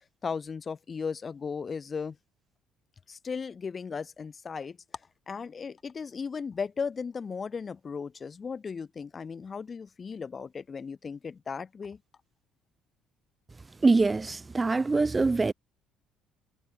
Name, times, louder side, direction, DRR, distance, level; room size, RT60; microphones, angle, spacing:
voice 1, 0.2-2.2 3.1-4.8 5.3-12.0, left 5 dB, 30° left, 1.8 m, -36 dB
voice 2, 13.8-15.5, right 3 dB, 20° right, 0.7 m, -24 dB
cardioid pair, 115°, 0 cm